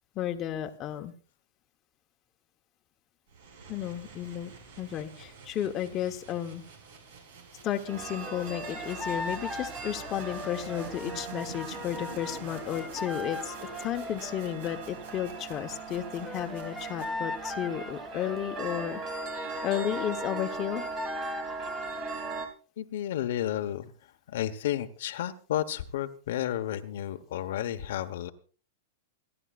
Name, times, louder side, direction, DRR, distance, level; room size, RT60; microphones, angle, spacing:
voice 1, 0.1-1.1 3.7-6.6 7.6-19.0 19.6-20.9, left 11 dB, 30° left, 4 dB, 1.2 m, -33 dB
sound 1, 3.3-17.6, right 4 dB, 70° right, 5.8 m, -49 dB
sound 2, 7.9-22.5, right 4 dB, 40° right, 3.2 m, -40 dB
sound 3, 8.2-14.4 16.2-22.4, left 3 dB, 5° left, 0.8 m, -39 dB
voice 2, 22.8-23.9 24.3-28.3, left 11 dB, 70° left, 7 dB, 1.2 m, -32 dB
28.0 x 11.0 x 2.5 m, 0.38 s
supercardioid pair, 150°, 0 cm